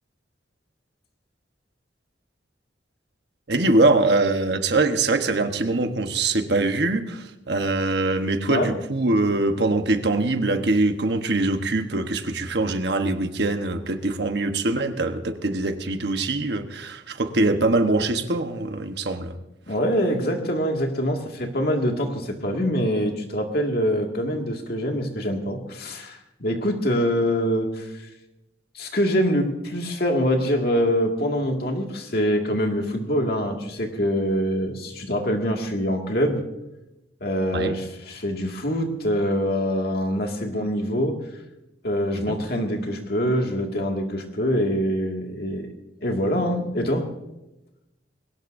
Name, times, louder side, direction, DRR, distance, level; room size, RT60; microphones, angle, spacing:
voice 1, 3.5-19.3 37.5-37.7 42.2-42.4, right 2 dB, 60° right, 7 dB, 1.2 m, -23 dB
voice 2, 19.7-28.1 28.7-36.4 37.2-41.2 41.8-45.7 46.0-47.1, equal, 55° left, 2 dB, 2.1 m, -24 dB
21.5 x 18.0 x 2.7 m, 0.95 s
head